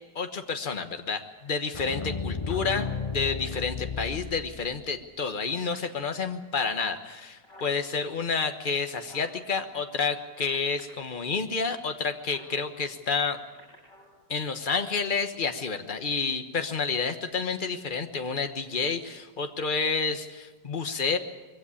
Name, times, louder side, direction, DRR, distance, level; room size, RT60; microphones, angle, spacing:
voice 1, 0.1-13.4 14.3-21.2, left 5 dB, 35° left, 7 dB, 1.2 m, -29 dB
sound 1, 1.7-4.9, left 5 dB, 50° left, 0.4 m, -34 dB
sound 2, 5.5-6.2 6.8-6.9 7.1-7.8 8.4-9.3 10.1-10.8 12.1-12.5 13.3-14.1 14.9-15.0, equal, 90° left, 8.1 m, -52 dB
22.0 x 16.0 x 8.5 m, 1.2 s
omnidirectional pair, 1.9 m